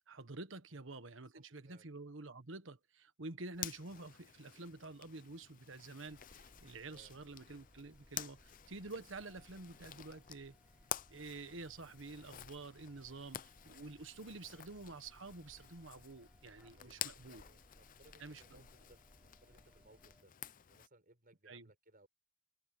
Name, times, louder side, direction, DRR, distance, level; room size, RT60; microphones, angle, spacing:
voice 1, 0.1-10.6 11.1-17.4 18.2-18.7 21.5-21.7, right 3 dB, 65° right, 1.4 m, -49 dB
voice 2, 1.3-1.9 6.9-7.3 16.7-20.3 20.7-22.1, right 2 dB, 45° right, 7.6 m, -66 dB
Zipper (clothing), 3.5-20.9, left 11 dB, 40° left, 0.5 m, -50 dB
sound 1, 6.1-20.2, equal, 5° right, 3.4 m, -65 dB
head